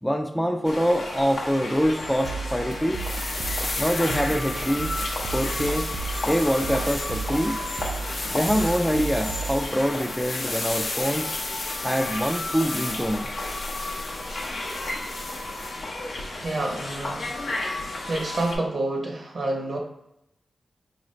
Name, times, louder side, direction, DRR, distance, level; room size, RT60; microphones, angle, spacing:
voice 1, 0.0-3.1 3.8-4.9 5.3-5.9 6.3-7.6 8.3-11.3 11.8-13.3, equal, 5° left, 3 dB, 0.3 m, -25 dB
sound 1, 0.6-18.6, left 2 dB, 85° left, 0.8 m, -33 dB
sound 2, 2.2-9.6, right 5 dB, 80° right, 0.4 m, -34 dB
sound 3, 2.9-15.8, left 2 dB, 55° left, 0.5 m, -34 dB
voice 2, 16.2-17.3 18.1-19.8, right 2 dB, 55° right, 1 dB, 0.7 m, -29 dB
4.7 x 2.6 x 3.1 m, 0.81 s
wide cardioid pair, 110°, 0 cm